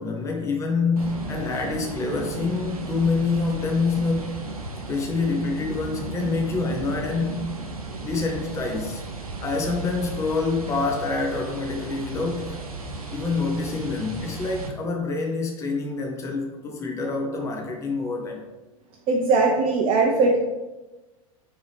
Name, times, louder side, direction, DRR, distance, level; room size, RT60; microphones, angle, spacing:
voice 1, 0.0-4.3 4.9-7.4 8.0-9.0 9.4-12.6 13.1-18.5, left 4 dB, 15° left, 1 dB, 0.6 m, -26 dB
sound 1, 1.0-14.7, right 3 dB, 85° right, 0.7 m, -35 dB
voice 2, 19.1-20.4, right 3 dB, 30° right, 0 dB, 0.5 m, -20 dB
4.7 x 2.7 x 3.3 m, 1.1 s
figure-of-eight pair, 90°, 18 cm